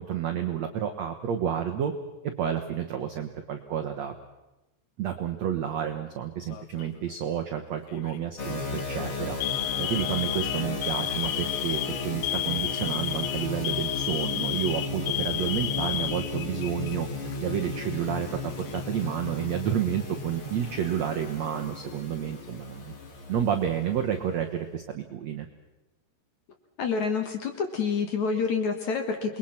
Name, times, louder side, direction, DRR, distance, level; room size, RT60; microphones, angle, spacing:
voice 1, 0.0-1.9 2.4-4.1 5.0-9.4 9.8-17.1 17.4-22.9 23.3-25.5, right 9 dB, 75° right, 5 dB, 1.6 m, -30 dB
Alarm, 6.5-7.0 7.9-8.2 8.6-8.8 9.4-17.0 17.3-17.4 18.3-19.0, left 14 dB, 80° left, 3.0 m, -32 dB
sound 1, 8.4-24.7, left 3 dB, 35° left, 2.5 m, -35 dB
voice 2, 26.8-29.4, left 5 dB, 55° left, 6 dB, 2.4 m, -28 dB
28.5 x 21.5 x 5.9 m, 1.0 s
omnidirectional pair, 4.9 m